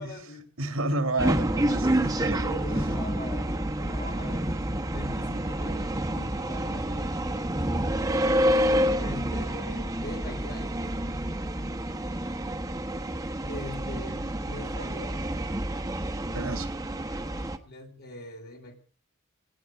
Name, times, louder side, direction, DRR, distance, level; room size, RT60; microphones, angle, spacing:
voice 1, 0.0-0.5 2.2-4.5 4.9-7.5 9.0-10.7 13.5-15.2 17.6-18.8, left 1 dB, 50° left, 3.6 m, -42 dB
voice 2, 0.6-2.4 16.3-16.7, right 2 dB, 80° right, 2.2 m, -30 dB
sound 1, 1.2-17.6, right 1 dB, 15° right, 1.2 m, -28 dB
18.0 x 16.0 x 4.7 m
head